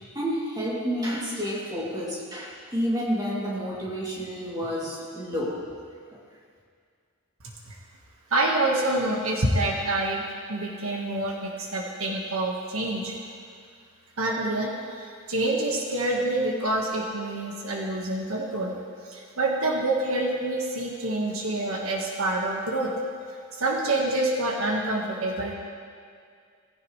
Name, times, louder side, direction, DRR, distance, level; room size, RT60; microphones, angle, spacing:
voice 1, 0.1-5.6, equal, 20° right, -6 dB, 2.9 m, -30 dB
voice 2, 8.3-10.2 10.5-13.1 14.2-18.7 19.1-22.9 23.6-25.5, right 2 dB, 75° right, -1 dB, 1.6 m, -27 dB
18.5 x 15.5 x 3.3 m, 2.1 s
head